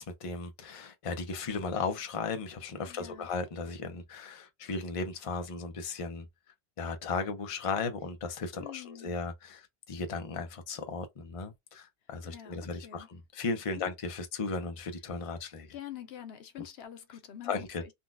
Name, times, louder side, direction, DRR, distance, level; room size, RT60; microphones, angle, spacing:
voice 1, 0.0-6.3 6.8-15.7 17.4-17.8, left 4 dB, 40° left, 0.6 m, -36 dB
voice 2, 2.8-3.3 8.6-9.1 12.2-13.1 13.7-13.9 15.7-17.5 17.8-17.9, left 11 dB, 85° left, 0.9 m, -46 dB
3.8 x 2.2 x 2.3 m
omnidirectional pair, 1.0 m